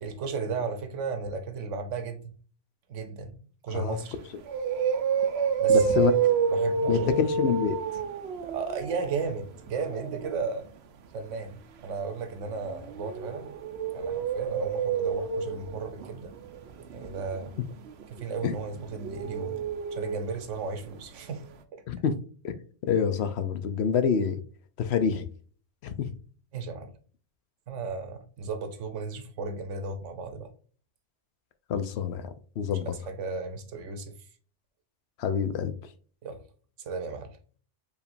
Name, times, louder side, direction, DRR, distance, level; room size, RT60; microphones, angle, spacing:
voice 1, 0.0-2.4 2.9-3.4 3.6-4.2 5.6-6.1 6.5-7.2 8.4-10.7 11.1-13.5 13.9-16.3 16.9-17.5 18.1-19.6 19.9-21.8 26.5-26.9 27.7-30.5 32.7-34.2 36.2-36.4 36.8-37.4, right 4 dB, 85° right, 1.1 m, -35 dB
sound 1, 4.0-4.1 4.5-10.3 12.5-20.5 20.8-20.9 21.2-21.3, right 6 dB, 65° right, 0.8 m, -29 dB
voice 2, 5.7-6.1 6.9-7.8 18.4-18.5 21.9-22.1 22.4-22.5 22.8-24.4 24.8-25.3 25.8-26.1 31.7-32.9 35.2-35.7, left 7 dB, 65° left, 0.8 m, -26 dB
4.8 x 3.3 x 2.5 m
omnidirectional pair, 1.2 m